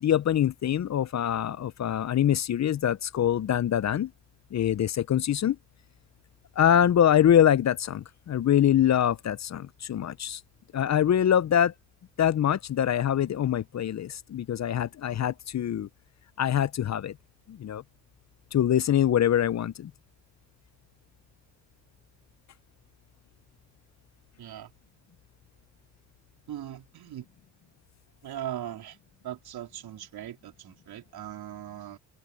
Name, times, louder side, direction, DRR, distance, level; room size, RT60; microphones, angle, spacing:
voice 1, 0.0-4.1 4.5-5.6 6.6-10.4 10.7-11.7 12.2-15.9 16.4-17.2 17.5-17.8 18.5-19.9, left 10 dB, 45° left, 0.7 m, -24 dB
voice 2, 24.4-24.7 26.5-27.3 28.2-29.0 29.2-32.0, right 11 dB, 65° right, 3.9 m, -39 dB
supercardioid pair, 65°, 40 cm